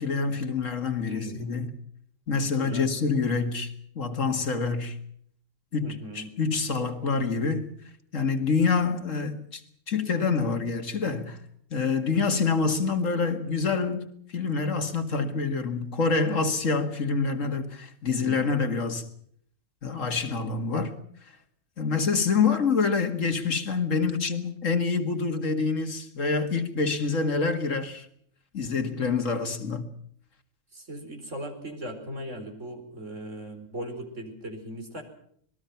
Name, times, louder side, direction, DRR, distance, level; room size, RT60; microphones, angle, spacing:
voice 1, 0.0-1.7 2.3-5.0 5.7-7.7 8.1-9.6 9.9-11.4 11.7-19.0 19.8-20.9 21.8-28.1 28.5-29.9, left 4 dB, 85° left, 2.4 m, -26 dB
voice 2, 1.1-1.4 2.6-2.8 3.1-3.2 5.8-6.3 18.1-18.4 30.7-35.0, right 1 dB, 75° right, 4.8 m, -38 dB
26.0 x 20.5 x 5.8 m
omnidirectional pair, 1.3 m